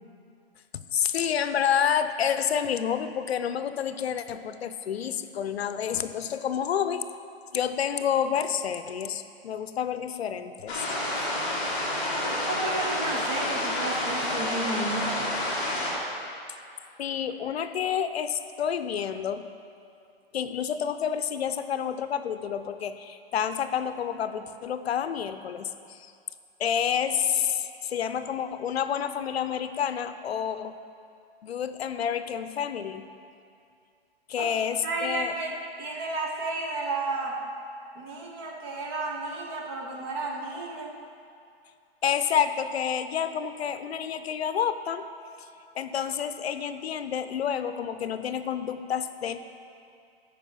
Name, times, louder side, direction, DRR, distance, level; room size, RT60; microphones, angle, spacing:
voice 1, 0.7-7.1 7.5-10.8 11.1-11.3 17.0-19.5 20.3-26.1 26.6-30.7 31.4-33.1 34.3-35.3 42.0-45.1 45.7-49.4, left 8 dB, 75° left, 11 dB, 0.7 m, -29 dB
sound 1, 10.7-15.9, left 1 dB, 20° left, 2.5 m, -29 dB
voice 2, 12.1-15.3 34.4-34.6 34.8-37.4 37.9-40.9, right 3 dB, 20° right, 1 dB, 0.9 m, -32 dB
14.0 x 5.4 x 5.8 m, 2.5 s
hypercardioid pair, 165°, 32 cm